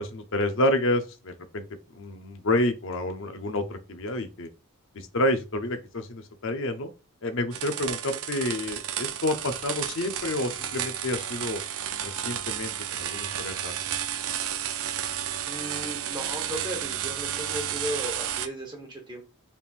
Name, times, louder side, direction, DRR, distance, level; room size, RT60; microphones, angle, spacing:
voice 1, 0.0-1.7 1.9-4.5 4.9-6.9 7.2-11.6 12.0-13.7, left 1 dB, 60° left, 0.7 m, -29 dB
sound 1, 7.5-18.5, right 10 dB, 75° right, 0.4 m, -32 dB
voice 2, 15.4-19.2, equal, 20° right, 1.1 m, -36 dB
4.3 x 3.5 x 2.5 m
head